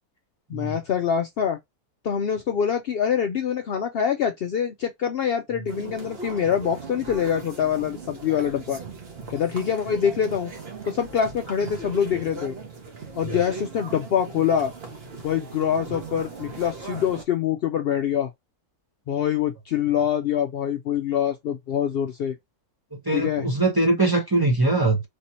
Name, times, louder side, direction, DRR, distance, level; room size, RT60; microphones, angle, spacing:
voice 1, 0.5-1.6 2.0-8.8 9.3-10.5 10.9-12.5 13.1-14.7 15.2-18.3 19.1-22.4 23.1-23.5, left 8 dB, 90° left, 0.5 m, -25 dB
sound 1, 5.7-17.2, right 4 dB, 45° right, 1.2 m, -39 dB
voice 2, 22.9-25.1, right 2 dB, 20° right, 0.7 m, -22 dB
3.3 x 2.8 x 2.8 m
omnidirectional pair, 1.6 m